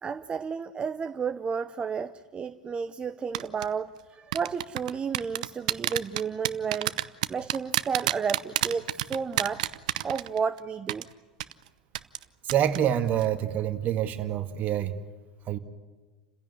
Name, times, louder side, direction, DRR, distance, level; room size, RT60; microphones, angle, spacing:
voice 1, 0.0-7.0 7.3-9.7 10.0-11.1, right 6 dB, 25° right, 11 dB, 0.7 m, -32 dB
sound 1, 3.3-3.7 4.3-10.6 10.9-11.0 11.4-11.5 11.9-12.2 12.5-12.8 13.1-13.3, right 14 dB, 70° right, 0.8 m, -28 dB
voice 2, 12.4-15.0 15.5-15.6, right 10 dB, 40° right, 9 dB, 1.8 m, -26 dB
29.0 x 16.0 x 9.7 m, 1.4 s
hypercardioid pair, 85°, 4 cm